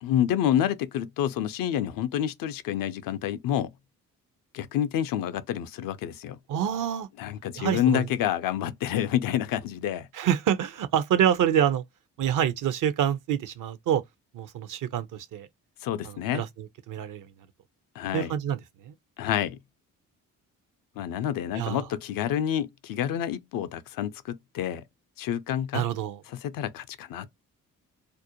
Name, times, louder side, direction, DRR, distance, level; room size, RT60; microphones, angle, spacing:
voice 1, 0.0-3.7 4.5-6.4 7.2-10.1 15.8-16.4 18.0-18.3 19.2-19.6 21.0-24.8 25.2-25.9 26.3-27.3, left 10 dB, 55° left, 0.5 m, -28 dB
voice 2, 6.5-7.1 7.6-8.1 10.1-11.8 12.2-14.0 14.3-15.5 16.0-17.3 18.1-18.9 21.5-21.8 25.7-26.2, right 9 dB, 50° right, 0.5 m, -27 dB
2.5 x 2.0 x 2.8 m
hypercardioid pair, 45°, 40 cm